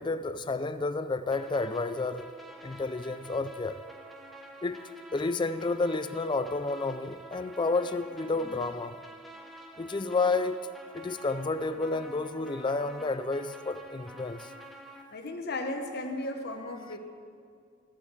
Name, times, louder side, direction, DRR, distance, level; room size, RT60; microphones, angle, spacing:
voice 1, 0.0-2.3 2.6-3.8 4.6-4.8 5.1-9.0 9.8-10.7 10.9-14.5, left 3 dB, 25° left, 0.4 m, -30 dB
sound 1, 1.3-15.0, right 1 dB, ahead, 1.0 m, -48 dB
voice 2, 15.1-17.0, left 2 dB, 50° left, 1.1 m, -35 dB
14.0 x 8.0 x 7.3 m
head